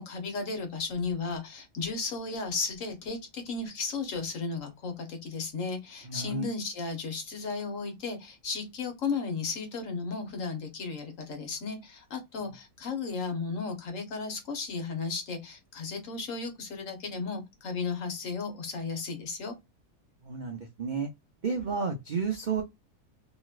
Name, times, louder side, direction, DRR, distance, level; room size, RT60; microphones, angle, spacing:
voice 1, 0.0-19.5, left 4 dB, 60° left, 1.3 m, -34 dB
voice 2, 6.0-6.5 20.2-21.1 21.4-22.6, right 5 dB, 75° right, 0.4 m, -31 dB
3.0 x 2.9 x 2.4 m
omnidirectional pair, 1.7 m